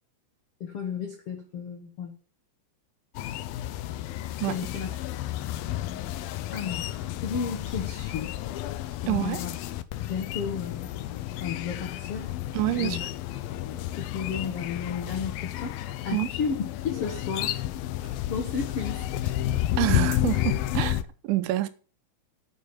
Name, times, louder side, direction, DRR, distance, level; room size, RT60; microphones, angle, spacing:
voice 1, 0.6-2.1 4.5-4.9 6.5-8.3 9.0-9.5 10.0-10.9 11.4-12.3 12.8-13.0 13.6-15.8 16.0-16.5 16.8-17.6 18.0-19.4, left 6 dB, 75° left, 1.3 m, -33 dB
sound 1, 3.1-21.0, left 13 dB, 90° left, 2.0 m, -31 dB
voice 2, 9.1-9.4 12.5-13.0 16.1-16.3 19.8-21.7, right 16 dB, 85° right, 3.3 m, -27 dB
8.9 x 8.7 x 7.2 m
omnidirectional pair, 5.2 m